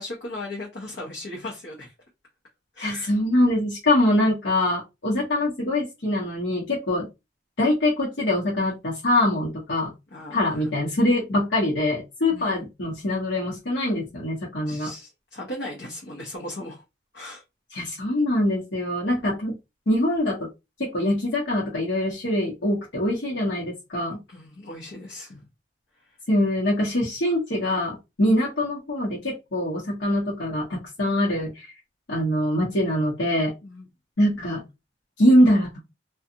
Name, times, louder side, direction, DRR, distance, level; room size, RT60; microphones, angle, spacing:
voice 1, 0.0-1.9 2.7-3.1 10.1-10.7 12.3-12.6 14.7-16.8 17.1-17.4 24.3-25.4 28.2-28.3 33.6-33.9, left 1 dB, 65° left, 0.8 m, -37 dB
voice 2, 2.8-7.1 7.6-9.9 10.3-14.9 17.7-19.6 19.9-20.5 20.8-24.2 26.3-31.7 32.1-33.5 34.2-34.6 35.2-35.8, left 1 dB, 90° left, 1.0 m, -23 dB
2.5 x 2.4 x 2.7 m
head